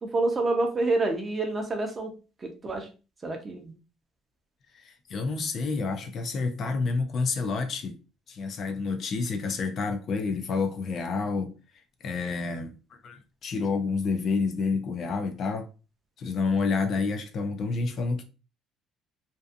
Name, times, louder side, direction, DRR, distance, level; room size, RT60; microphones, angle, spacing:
voice 1, 0.0-2.1 2.4-2.9 3.2-3.7, right 2 dB, 25° right, 0.6 m, -27 dB
voice 2, 4.7-8.0 8.3-11.5 12.0-12.7 13.0-15.7 16.2-18.2, left 4 dB, 45° left, 0.4 m, -29 dB
2.6 x 2.3 x 2.4 m
cardioid pair, 135°, 0 cm